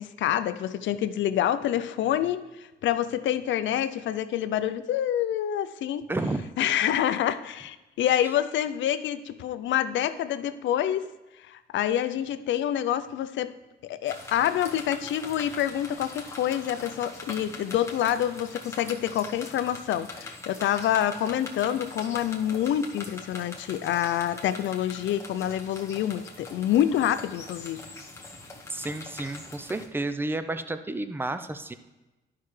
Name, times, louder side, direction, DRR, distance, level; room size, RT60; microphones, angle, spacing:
voice 1, 0.0-6.1 6.6-11.1 11.5-13.5 13.8-27.8, left 11 dB, 70° left, 13 dB, 0.5 m, -27 dB
voice 2, 6.1-6.5 28.7-31.7, right 2 dB, 10° right, 10 dB, 0.5 m, -31 dB
sound 1, 14.1-29.9, left 2 dB, 15° left, 1.1 m, -42 dB
12.0 x 5.7 x 3.2 m, 1.1 s
cardioid pair, 90°, 20 cm